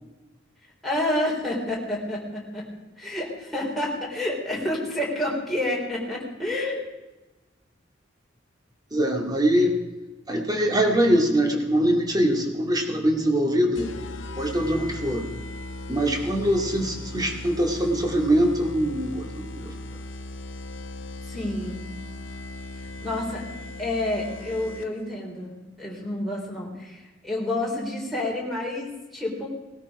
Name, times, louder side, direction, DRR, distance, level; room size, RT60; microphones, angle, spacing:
voice 1, 0.8-2.7 3.0-6.9 21.2-21.9 23.0-23.4 23.8-29.5, left 1 dB, ahead, -4 dB, 3.7 m, -29 dB
voice 2, 8.9-9.7 10.3-13.9 14.4-15.3 15.9-19.7, right 1 dB, 20° right, 2 dB, 2.3 m, -23 dB
sound 1, 13.8-25.1, left 1 dB, 85° left, 1.3 m, -38 dB
19.0 x 12.5 x 4.9 m, 1.1 s
head